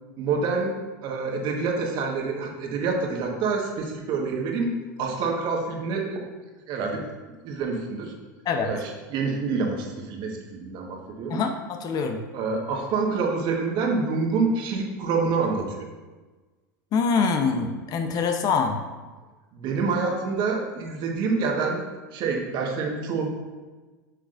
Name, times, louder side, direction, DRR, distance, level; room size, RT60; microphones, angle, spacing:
voice 1, 0.2-0.8 1.0-4.7 5.0-6.2 6.7-7.0 7.4-8.1 8.6-11.4 12.3-15.9 19.5-21.8 22.1-23.3, right 4 dB, 45° right, 1 dB, 1.4 m, -27 dB
voice 2, 11.3-12.2 16.9-18.8, left 5 dB, 40° left, 6 dB, 0.8 m, -24 dB
7.8 x 6.2 x 2.6 m, 1.3 s
hypercardioid pair, 95°, 10 cm